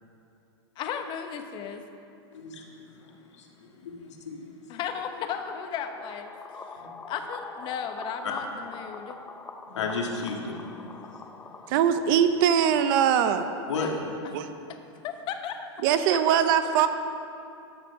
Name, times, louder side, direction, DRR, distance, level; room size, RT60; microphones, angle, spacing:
voice 1, 0.8-1.8 4.7-6.3 6.7-6.8 7.1-9.2 15.0-15.7 16.1-16.2, left 7 dB, 35° left, 7 dB, 0.9 m, -35 dB
voice 2, 2.3-2.7 3.0-4.5 6.8-6.9 8.2-8.3 9.7-10.8 11.1-11.2 13.7-14.1, left 4 dB, 90° left, 0 dB, 1.8 m, -34 dB
sound 1, 5.6-11.7, left 4 dB, 10° left, 0.5 m, -43 dB
voice 3, 11.7-13.5 14.3-14.5 15.8-16.9, right 8 dB, 50° right, 10 dB, 0.6 m, -22 dB
13.5 x 6.0 x 5.8 m, 2.6 s
supercardioid pair, 140°, 15 cm